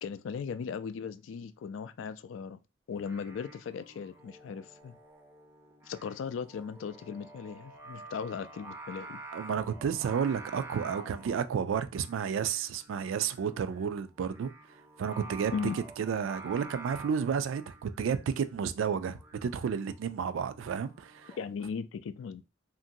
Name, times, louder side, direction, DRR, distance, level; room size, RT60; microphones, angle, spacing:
voice 1, 0.0-2.6 2.9-4.9 5.9-9.2 15.5-15.8 21.4-22.4, left 6 dB, 75° left, 0.3 m, -37 dB
Singing, 2.9-21.4, right 3 dB, 10° right, 0.4 m, -49 dB
voice 2, 9.3-14.5 15.0-15.5 16.0-21.3, right 7 dB, 80° right, 0.3 m, -31 dB
2.9 x 2.5 x 2.6 m
head